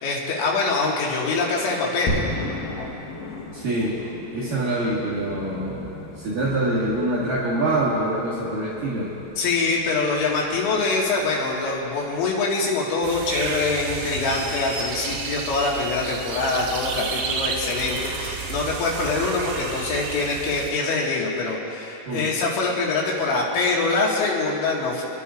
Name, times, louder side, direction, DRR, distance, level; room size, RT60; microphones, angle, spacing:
voice 1, 0.0-2.2 9.4-25.0, left 3 dB, 85° left, -3 dB, 4.2 m, -24 dB
sound 1, 2.1-12.3, left 1 dB, 65° left, 2.5 m, -36 dB
voice 2, 3.5-4.0 4.3-5.8 6.2-9.1 22.1-22.3, right 1 dB, 60° right, -9 dB, 2.8 m, -25 dB
sound 2, 13.0-20.7, right 4 dB, 85° right, 3.5 m, -31 dB
29.5 x 11.0 x 2.5 m, 3.0 s
omnidirectional pair, 5.2 m